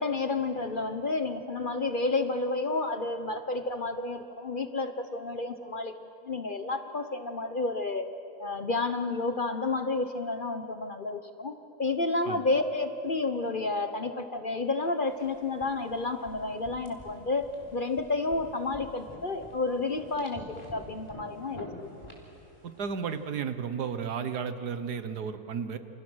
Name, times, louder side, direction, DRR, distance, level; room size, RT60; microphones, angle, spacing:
voice 1, 0.0-5.9 6.2-8.1 8.4-21.9, left 3 dB, 35° left, 8 dB, 1.0 m, -31 dB
sound 1, 15.1-23.3, equal, 15° left, 4.2 m, -48 dB
voice 2, 22.6-25.8, right 6 dB, 80° right, 10 dB, 1.8 m, -33 dB
29.0 x 28.5 x 6.3 m, 2.8 s
omnidirectional pair, 1.7 m